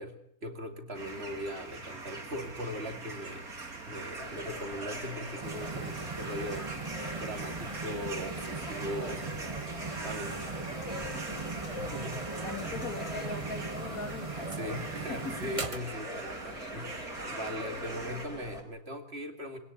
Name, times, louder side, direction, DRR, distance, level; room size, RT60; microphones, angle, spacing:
voice 1, 0.0-3.5 3.9-6.7 7.2-9.3 10.0-10.4 11.8-12.2 12.6-12.8 14.6-17.0 17.3-19.6, equal, 45° right, 6 dB, 2.7 m, -39 dB
sound 1, 0.9-18.3, right 3 dB, 75° right, 3.6 m, -42 dB
sound 2, 4.2-18.6, left 1 dB, 20° left, 4.3 m, -44 dB
sound 3, 5.4-15.8, right 4 dB, 25° right, 1.2 m, -40 dB
voice 2, 12.4-14.8 15.1-15.3, left 4 dB, 65° left, 7 dB, 2.8 m, -40 dB
23.5 x 18.0 x 8.5 m, 0.67 s
omnidirectional pair, 1.6 m